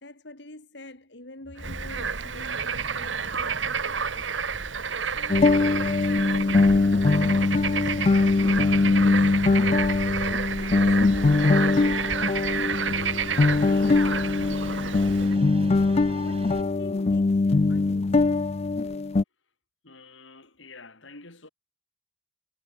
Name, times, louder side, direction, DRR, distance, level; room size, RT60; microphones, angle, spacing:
voice 1, 0.0-4.3 4.6-4.8 5.2-9.3 10.5-12.2 12.8-15.5 16.2-18.2, left 1 dB, 65° left, 3.6 m, -45 dB
Bird / Frog, 1.6-15.4, right 6 dB, 75° right, 2.1 m, -30 dB
sound 1, 5.3-19.2, left 3 dB, 35° left, 0.4 m, -22 dB
sound 2, 8.8-16.6, right 2 dB, 30° right, 3.6 m, -45 dB
voice 2, 19.8-21.5, left 3 dB, 85° left, 5.2 m, -48 dB
head